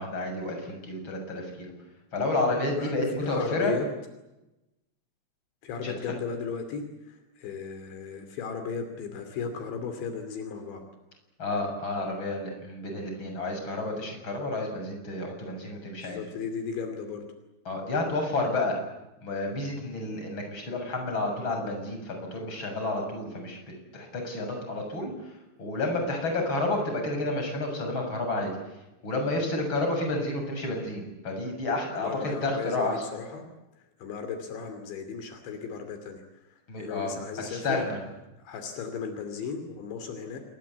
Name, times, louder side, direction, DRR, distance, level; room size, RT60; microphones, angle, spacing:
voice 1, 0.0-1.7 2.1-3.7 5.8-5.9 11.4-16.2 17.7-18.8 19.2-23.6 23.9-28.5 29.0-33.0 36.7-37.1 37.5-38.0, left 2 dB, 25° left, 3 dB, 7.4 m, -30 dB
voice 2, 2.7-3.9 5.6-10.8 16.0-17.3 31.9-33.5 33.8-37.8 38.4-40.4, left 5 dB, 75° left, 7 dB, 5.0 m, -36 dB
28.0 x 23.0 x 8.4 m, 0.98 s
omnidirectional pair, 5.3 m